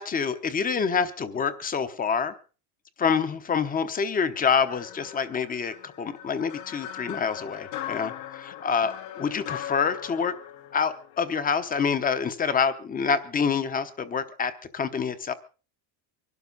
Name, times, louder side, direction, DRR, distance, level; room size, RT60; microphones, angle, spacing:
voice 1, 0.0-2.3 3.0-8.1 8.4-10.4 10.7-15.3, left 6 dB, 20° left, 12 dB, 0.9 m, -27 dB
sound 1, 4.7-11.8, left 11 dB, 50° left, 1.2 m, -40 dB
24.5 x 12.0 x 4.0 m, 0.36 s
cardioid pair, 170°, 48 cm